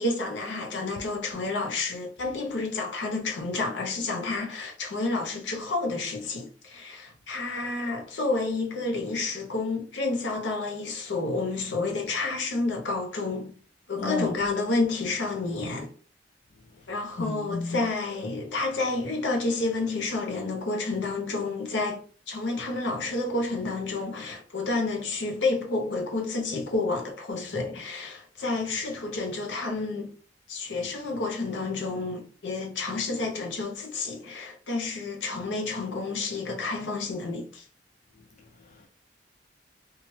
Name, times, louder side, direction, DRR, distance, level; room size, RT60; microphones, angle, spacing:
voice 1, 0.0-13.5 13.9-15.9 16.9-30.1 30.5-37.6, left 3 dB, 80° left, 0.7 m, -30 dB
voice 2, 14.0-14.4 16.8-16.9 17.2-17.8 38.2-38.9, left 3 dB, 45° left, 0.4 m, -34 dB
2.9 x 2.3 x 3.0 m
head